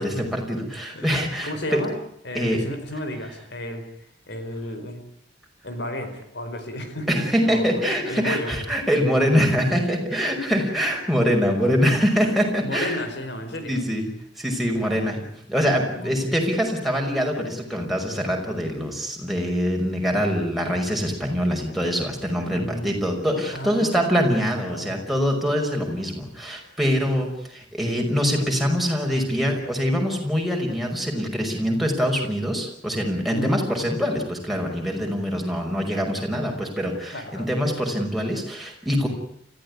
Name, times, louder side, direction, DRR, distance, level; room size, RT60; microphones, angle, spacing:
voice 1, 0.0-1.8 2.3-2.6 7.1-13.0 13.7-14.1 14.4-15.2 15.5-39.1, equal, ahead, 0 dB, 5.6 m, -24 dB
voice 2, 1.4-2.0 2.2-3.9 4.3-5.0 5.6-7.7 8.1-8.5 12.6-13.8 14.8-15.3 15.9-16.4 22.5-23.0 23.5-24.3 24.7-25.1 33.3-33.6 37.1-37.5, left 1 dB, 60° left, 8 dB, 4.9 m, -33 dB
29.0 x 15.0 x 9.8 m, 0.70 s
head